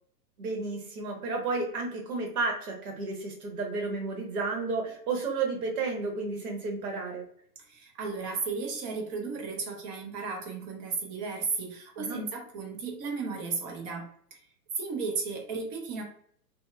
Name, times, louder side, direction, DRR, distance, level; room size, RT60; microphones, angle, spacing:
voice 1, 0.4-7.2 12.0-12.2, right 3 dB, 60° right, 1 dB, 1.1 m, -32 dB
voice 2, 7.6-14.4 14.8-16.0, right 4 dB, 25° right, 1 dB, 0.5 m, -34 dB
2.7 x 2.2 x 2.2 m, 0.62 s
hypercardioid pair, 115°, 49 cm